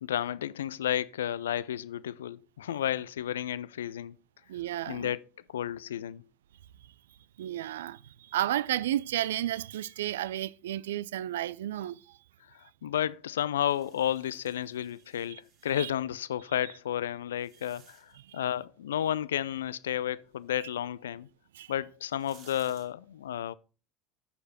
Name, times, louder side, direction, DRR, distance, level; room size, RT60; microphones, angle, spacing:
voice 1, 0.0-4.2 4.9-5.2 5.5-6.2 12.6-21.3 21.7-23.5, left 10 dB, 75° left, 0.4 m, -32 dB
voice 2, 4.5-5.1 7.4-12.2 15.3-15.4 15.7-15.9 18.3-18.4 21.5-21.7, right 13 dB, 75° right, 0.3 m, -32 dB
sound 1, 13.7-15.9 16.7-18.3 21.3-21.4 21.9-22.8, right 6 dB, 55° right, 3.9 m, -59 dB
9.6 x 6.7 x 4.2 m
figure-of-eight pair, 70°, 0 cm